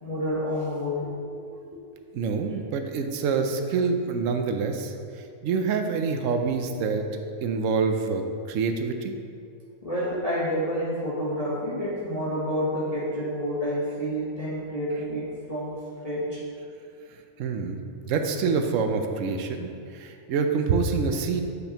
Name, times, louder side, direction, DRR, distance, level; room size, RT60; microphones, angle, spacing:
voice 1, 0.0-1.1 1.7-1.8 9.8-15.7 16.0-16.4, equal, 30° left, -9 dB, 1.0 m, -29 dB
voice 2, 2.1-4.9 5.4-9.2 17.4-17.8 18.1-21.4, right 5 dB, 70° right, 5 dB, 0.9 m, -26 dB
8.2 x 5.1 x 2.9 m, 2.4 s
omnidirectional pair, 1.5 m